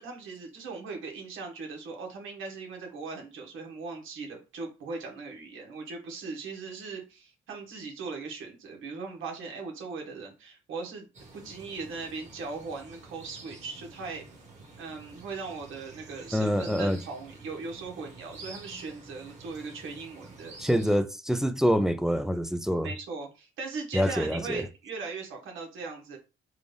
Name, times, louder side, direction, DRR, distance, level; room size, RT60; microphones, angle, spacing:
voice 1, 0.0-11.1 11.3-14.2 14.8-20.6 22.8-26.2, right 4 dB, 80° right, 1.4 m, -39 dB
sound 1, 11.1-21.0, right 3 dB, 35° right, 1.8 m, -49 dB
voice 2, 16.3-17.0 20.6-22.9 23.9-24.6, equal, ahead, 0.4 m, -26 dB
3.7 x 2.5 x 3.3 m
cardioid pair, 90°, 20 cm